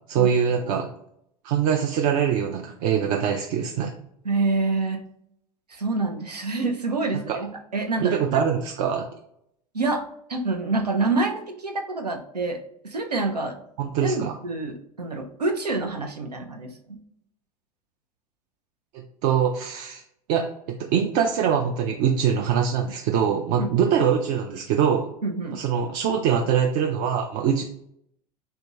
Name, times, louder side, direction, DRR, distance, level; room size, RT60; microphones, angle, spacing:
voice 1, 0.1-0.9 1.4-3.9 7.3-7.4 8.0-9.0 13.8-14.3 18.9-20.0 20.3-25.1 25.5-27.6, right 8 dB, 45° right, 2 dB, 0.4 m, -23 dB
voice 2, 4.2-5.0 5.7-8.4 9.7-10.0 10.3-13.6 14.0-17.0 23.6-23.9 25.2-25.6, right 3 dB, 85° right, 4 dB, 0.6 m, -27 dB
3.3 x 2.7 x 2.9 m, 0.73 s
figure-of-eight pair, 80°, 20 cm